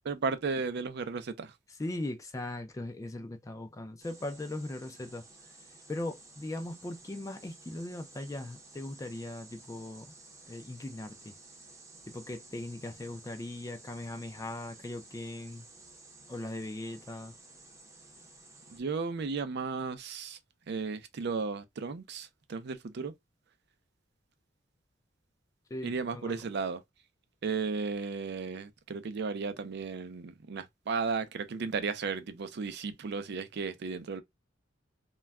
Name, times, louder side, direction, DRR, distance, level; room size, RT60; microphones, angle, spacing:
voice 1, 0.0-1.5 18.7-20.4 20.7-23.1 25.8-26.8 27.4-34.2, right 4 dB, 60° right, 0.4 m, -34 dB
voice 2, 1.8-5.3 5.9-10.2 10.5-11.3 12.0-15.7 16.3-17.3 25.7-26.4, left 2 dB, 15° left, 0.3 m, -39 dB
sound 1, 4.0-18.8, right 2 dB, 15° right, 0.6 m, -54 dB
2.2 x 2.1 x 3.3 m
head